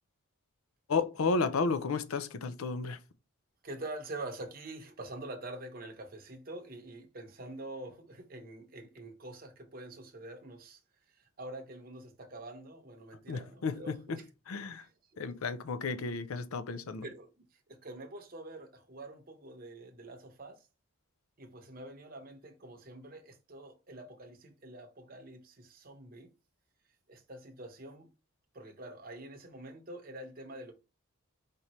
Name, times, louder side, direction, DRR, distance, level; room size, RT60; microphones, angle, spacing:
voice 1, 0.9-3.0 13.3-14.2 14.5-14.9 15.2-17.0, left 4 dB, 75° left, 0.5 m, -32 dB
voice 2, 3.6-10.8 11.1-14.3 14.8-14.9 15.3-15.4 17.0-20.7 21.4-26.3 27.1-28.1 28.5-30.7, right 2 dB, 40° right, 0.8 m, -46 dB
5.0 x 2.9 x 3.0 m
head